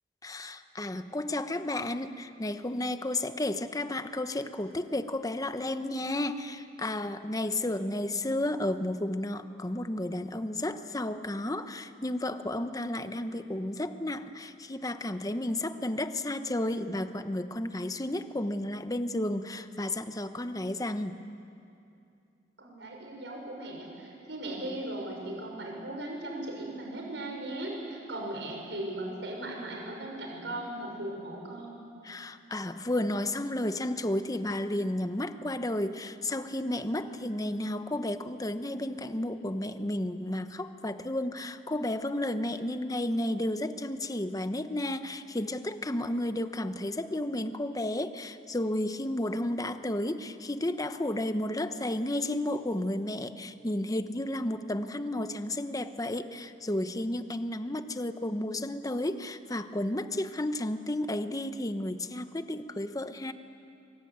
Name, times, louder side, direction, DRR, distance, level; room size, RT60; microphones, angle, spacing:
voice 1, 0.2-21.2 32.0-63.3, left 1 dB, 20° left, 9 dB, 1.0 m, -32 dB
voice 2, 22.6-31.8, right 1 dB, 85° right, 0 dB, 6.3 m, -38 dB
24.0 x 23.5 x 9.4 m, 2.6 s
head